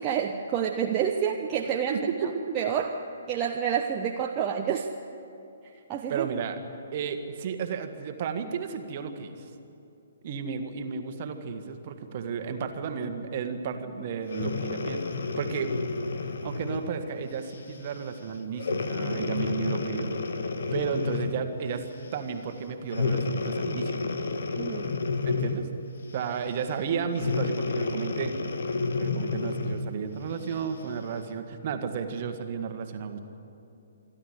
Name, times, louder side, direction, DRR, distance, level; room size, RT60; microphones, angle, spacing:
voice 1, 0.0-2.9 3.3-4.9 5.9-6.3 24.6-24.9, right 8 dB, 25° right, 1 dB, 1.0 m, -28 dB
voice 2, 1.9-2.6 6.1-6.6 6.9-9.4 10.2-15.7 16.4-20.1 20.4-21.9 22.1-24.0 25.2-25.7 26.1-28.3 29.0-33.2, right 6 dB, 40° right, 7 dB, 1.7 m, -33 dB
Breathing, 14.3-16.9 17.5-17.8 18.6-21.5 22.9-25.8 27.1-29.9 30.5-30.6, left 3 dB, 55° left, 1.6 m, -30 dB
27.5 x 12.0 x 9.9 m, 2.7 s
figure-of-eight pair, 125°, 0 cm